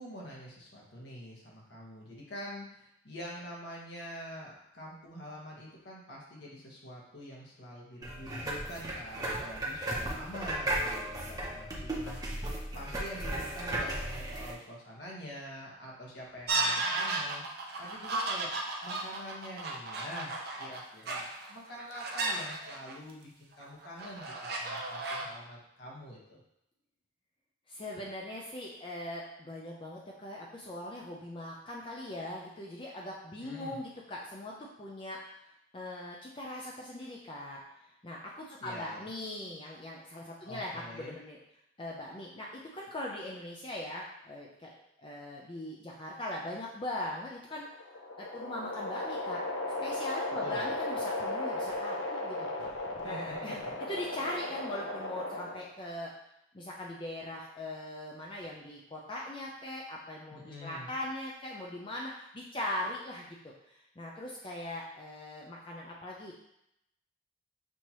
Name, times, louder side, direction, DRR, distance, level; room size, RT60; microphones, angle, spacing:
voice 1, 0.0-18.5 18.8-26.4 33.4-33.8 38.6-39.1 40.4-41.1 50.4-50.7 53.0-53.3 60.3-60.9, equal, 65° left, -4 dB, 1.4 m, -46 dB
sound 1, 8.0-14.5, right 1 dB, 20° right, 0.7 m, -35 dB
sound 2, 16.5-23.1 23.6-25.2, right 2 dB, 55° right, 0.6 m, -34 dB
voice 2, 27.7-35.2 35.7-37.6 38.0-41.4 41.8-47.6 48.2-49.4 49.8-52.5 53.0-53.6 53.9-56.1 56.5-66.4, left 1 dB, 25° left, -3 dB, 0.5 m, -40 dB
sound 3, 47.5-55.8, left 2 dB, 85° left, 0.7 m, -36 dB
6.3 x 2.8 x 3.0 m, 0.79 s
head